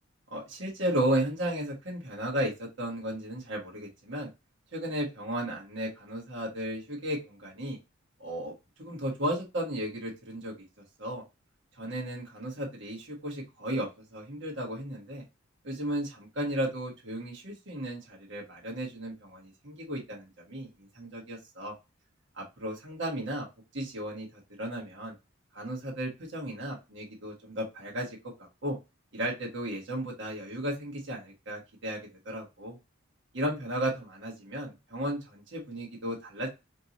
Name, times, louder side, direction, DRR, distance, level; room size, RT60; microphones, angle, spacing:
voice 1, 0.3-4.3 4.7-7.8 8.2-8.5 8.8-10.5 11.0-11.2 11.8-15.2 15.6-20.7 20.9-21.7 22.4-23.5 23.7-25.1 25.5-28.2 28.6-28.8 29.1-32.0 32.2-32.8 33.3-36.5, right 1 dB, 60° right, -3 dB, 1.4 m, -34 dB
4.5 x 2.8 x 2.9 m, 0.25 s
head